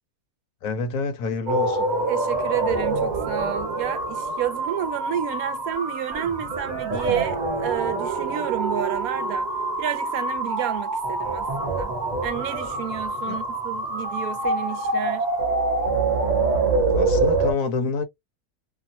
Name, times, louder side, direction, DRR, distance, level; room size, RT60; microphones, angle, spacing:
voice 1, 0.6-1.9 13.3-13.4 16.9-18.0, left 4 dB, 70° left, 1.2 m, -27 dB
sound 1, 1.5-17.5, right 3 dB, 35° right, 0.9 m, -25 dB
voice 2, 2.1-9.5 9.8-15.3, right 11 dB, 75° right, 1.1 m, -30 dB
2.8 x 2.7 x 2.6 m
omnidirectional pair, 1.6 m